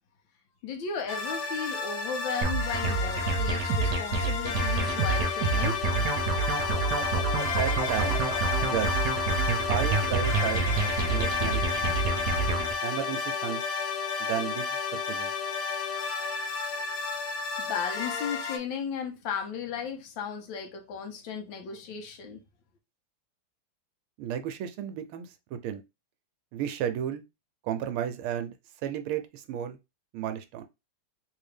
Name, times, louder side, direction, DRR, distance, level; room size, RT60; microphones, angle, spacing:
voice 1, 0.6-5.9 17.6-22.4, left 6 dB, 70° left, 1.4 m, -35 dB
sound 1, 1.1-18.6, left 5 dB, 90° left, 1.8 m, -31 dB
sound 2, 2.4-12.7, right 4 dB, 60° right, 1.3 m, -28 dB
voice 2, 7.6-8.2 8.6-8.9 9.7-10.7 11.1-11.6 12.8-13.6 14.3-15.3 24.2-25.8 26.5-27.2 27.6-28.5 28.8-29.8 30.1-30.6, right 10 dB, 85° right, 1.5 m, -33 dB
3.7 x 2.7 x 3.3 m
omnidirectional pair, 2.3 m